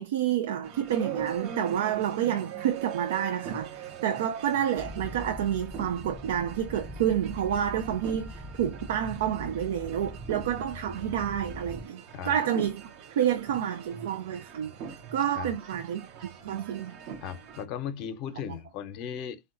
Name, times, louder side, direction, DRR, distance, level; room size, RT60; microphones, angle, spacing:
voice 1, 0.0-12.8 13.1-14.7 15.1-17.0 18.5-18.6, right 10 dB, 75° right, 0.3 m, -29 dB
sound 1, 0.6-17.6, right 8 dB, 55° right, 0.8 m, -42 dB
sound 2, 4.8-11.8, left 1 dB, 10° right, 0.5 m, -42 dB
voice 2, 17.2-19.4, left 8 dB, 55° left, 0.6 m, -36 dB
3.6 x 2.2 x 2.4 m
hypercardioid pair, 95°, 0 cm